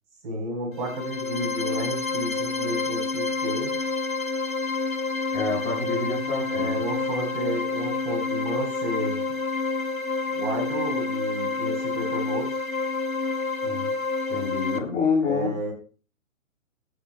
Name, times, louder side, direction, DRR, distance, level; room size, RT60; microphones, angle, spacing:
voice 1, 0.2-3.8 6.5-9.2 10.3-12.5 15.2-15.7, right 1 dB, 35° right, 2 dB, 4.1 m, -32 dB
sound 1, 0.7-14.8, left 3 dB, 85° left, 1.2 m, -28 dB
voice 2, 5.3-6.8 13.6-13.9 14.3-15.5, left 4 dB, 20° left, -4 dB, 6.1 m, -27 dB
22.0 x 8.4 x 2.2 m, 0.38 s
figure-of-eight pair, 130°, 41 cm